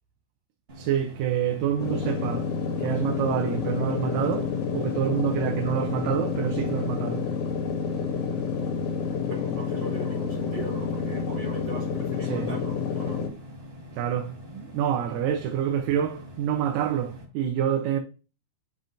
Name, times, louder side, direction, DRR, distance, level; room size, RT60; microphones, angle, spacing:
sound 1, 0.7-17.3, equal, 30° right, 1.1 m, -45 dB
voice 1, 0.8-2.5 2.8-7.3 12.2-12.5 13.9-18.0, right 9 dB, 85° right, 2.3 m, -27 dB
sound 2, 1.8-13.3, left 6 dB, 80° left, 2.7 m, -29 dB
voice 2, 9.2-13.3, right 3 dB, 55° right, 2.0 m, -40 dB
8.6 x 5.1 x 2.6 m
omnidirectional pair, 3.8 m